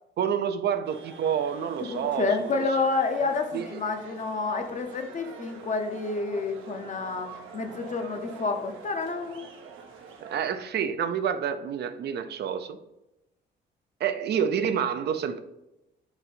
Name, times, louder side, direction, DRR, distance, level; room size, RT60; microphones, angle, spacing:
voice 1, 0.2-2.6 3.5-3.8 10.2-12.8 14.0-15.4, right 8 dB, 60° right, 10 dB, 0.4 m, -28 dB
sound 1, 0.8-10.4, right 5 dB, 90° right, 0.7 m, -46 dB
voice 2, 1.8-9.5, left 4 dB, 40° left, 5 dB, 0.6 m, -29 dB
4.0 x 2.6 x 4.2 m, 0.91 s
cardioid pair, 90°, 20 cm